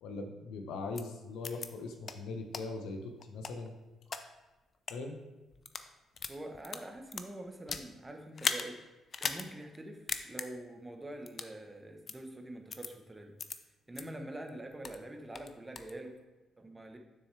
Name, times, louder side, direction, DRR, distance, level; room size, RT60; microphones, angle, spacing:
voice 1, 0.0-3.7 4.9-5.2, left 3 dB, 85° left, 5 dB, 0.9 m, -40 dB
sound 1, 0.9-1.0 1.4-1.7 2.0-2.1 2.5-2.6 3.2-4.2 4.7-4.9 5.5-5.9 6.2-7.9 8.3-8.7 9.1-9.4 9.7-9.8 10.1-10.5 11.3-11.5 12.1-12.2 12.7-12.9 13.4-13.5 13.9-14.0 14.5-15.0 15.3-15.9, left 5 dB, 45° left, 0.5 m, -37 dB
voice 2, 6.3-8.8 9.2-13.4 13.9-16.1 16.6-17.0, right 1 dB, 15° right, 4 dB, 1.0 m, -45 dB
7.0 x 6.4 x 3.3 m, 1.2 s
cardioid pair, 90°, 0 cm